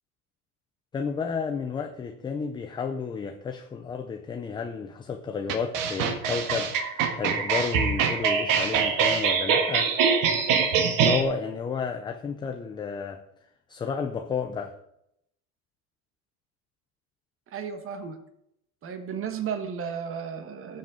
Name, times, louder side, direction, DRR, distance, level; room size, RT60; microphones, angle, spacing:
voice 1, 0.9-9.9 10.8-13.2 13.7-14.7, left 5 dB, 10° left, 5 dB, 0.4 m, -32 dB
sound 1, 5.5-11.2, right 6 dB, 45° right, 1.6 m, -24 dB
voice 2, 17.5-18.2 18.8-20.8, right 7 dB, 30° right, 7 dB, 1.4 m, -34 dB
14.0 x 7.8 x 3.7 m, 0.76 s
supercardioid pair, 130°, 45 cm